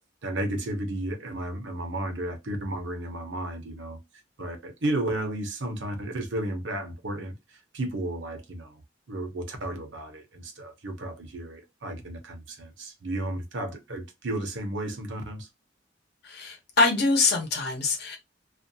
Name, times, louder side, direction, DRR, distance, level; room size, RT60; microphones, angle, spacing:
voice 1, 0.2-4.0 4.4-8.8 9.1-15.5, right 1 dB, 70° right, 0.7 m, -33 dB
voice 2, 16.2-18.2, left 3 dB, 60° left, 0.9 m, -24 dB
2.5 x 2.2 x 2.7 m
head